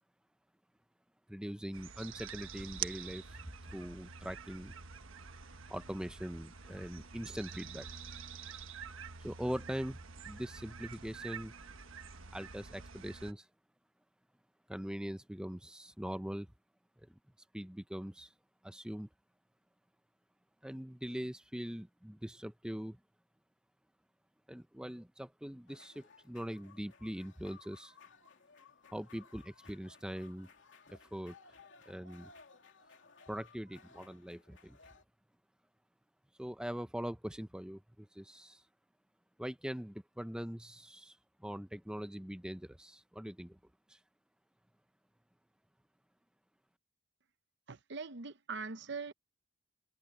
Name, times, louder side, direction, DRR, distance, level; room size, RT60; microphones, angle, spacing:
voice 1, 1.3-4.7 5.7-7.9 9.2-10.0 10.3-11.5 12.3-13.5 14.7-16.5 17.0-17.1 17.5-18.3 18.6-19.1 20.6-23.0 24.5-27.9 28.9-30.5 30.9-31.4 31.9-32.3 33.3-34.8 36.4-38.6 39.4-43.6 43.9-44.0, equal, 5° right, 0.6 m, -42 dB
sound 1, 1.7-13.3, right 7 dB, 80° right, 1.3 m, -47 dB
sound 2, 25.7-35.0, left 4 dB, 65° left, 3.1 m, -60 dB
voice 2, 47.7-49.1, right 4 dB, 60° right, 0.8 m, -42 dB
head